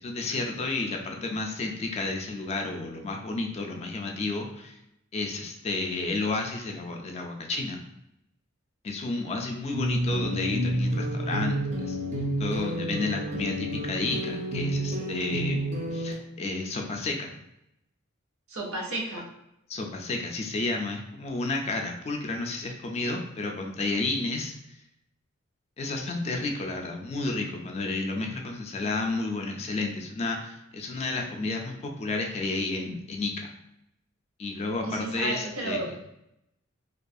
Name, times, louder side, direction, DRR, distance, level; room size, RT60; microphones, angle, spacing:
voice 1, 0.0-4.8 5.1-7.8 8.8-12.0 12.4-15.6 15.9-17.3 19.7-24.8 25.8-33.5 34.4-35.9, left 3 dB, 30° left, 2 dB, 0.3 m, -31 dB
sound 1, 9.7-16.1, right 1 dB, 35° right, 0.4 m, -29 dB
voice 2, 18.5-19.2 34.8-36.1, right 2 dB, 85° right, -1 dB, 0.7 m, -33 dB
2.3 x 2.3 x 2.5 m, 0.82 s
head